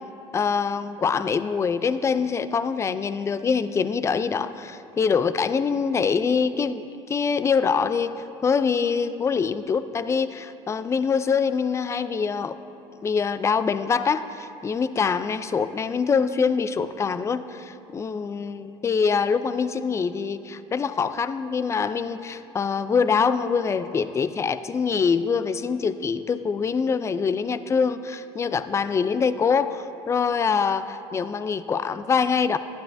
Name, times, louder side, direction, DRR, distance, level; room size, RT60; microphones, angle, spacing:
voice 1, 0.3-8.1 8.4-12.6 13.0-32.6, left 5 dB, 20° left, 12 dB, 0.3 m, -24 dB
12.0 x 10.5 x 2.6 m, 2.7 s
supercardioid pair, 90°, 13 cm